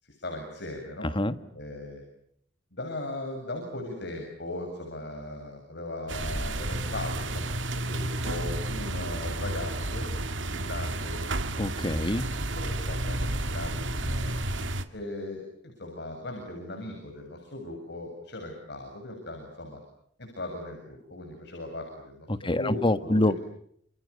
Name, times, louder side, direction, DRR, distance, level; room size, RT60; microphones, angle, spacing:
voice 1, 0.0-1.1 1.5-2.0 2.7-10.1 10.5-11.2 12.6-14.3 14.9-15.4 15.8-19.8 20.2-23.3, left 1 dB, 65° left, 3 dB, 7.4 m, -38 dB
sound 1, 6.1-14.9, right 1 dB, 90° right, 2.1 m, -31 dB
voice 2, 11.6-12.3 22.4-23.4, left 1 dB, 25° left, 11 dB, 1.6 m, -25 dB
29.0 x 28.5 x 6.9 m, 0.68 s
head